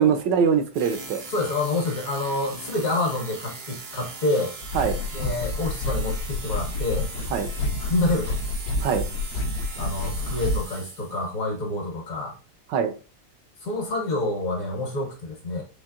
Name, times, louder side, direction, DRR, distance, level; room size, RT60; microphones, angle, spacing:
voice 1, 0.0-1.2 4.7-5.0 7.3-7.5 8.8-9.0 12.7-12.9, right 7 dB, 80° right, 8 dB, 1.2 m, -22 dB
sound 1, 0.7-11.3, right 4 dB, 60° right, 0.6 m, -40 dB
voice 2, 1.3-4.5 5.1-7.1 7.8-8.4 9.8-12.3 13.6-15.6, left 2 dB, 55° left, 1 dB, 1.3 m, -27 dB
sound 2, 4.6-10.7, left 2 dB, 70° left, 1.0 m, -29 dB
4.5 x 3.1 x 2.4 m, 0.33 s
omnidirectional pair, 2.0 m